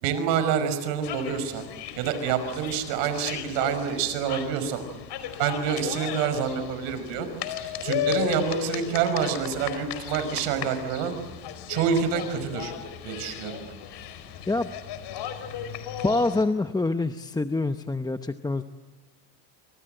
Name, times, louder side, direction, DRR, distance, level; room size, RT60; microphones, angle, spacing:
voice 1, 0.0-1.6 2.0-4.8 5.4-7.3 7.8-11.2 11.7-12.7 13.0-13.7, right 7 dB, 80° right, 10 dB, 5.6 m, -27 dB
sound 1, 1.0-16.4, left 9 dB, 55° left, 4.7 m, -35 dB
voice 2, 16.0-18.6, left 2 dB, 10° left, 9 dB, 0.8 m, -26 dB
28.5 x 26.5 x 7.8 m, 1.2 s
supercardioid pair, 120°, 48 cm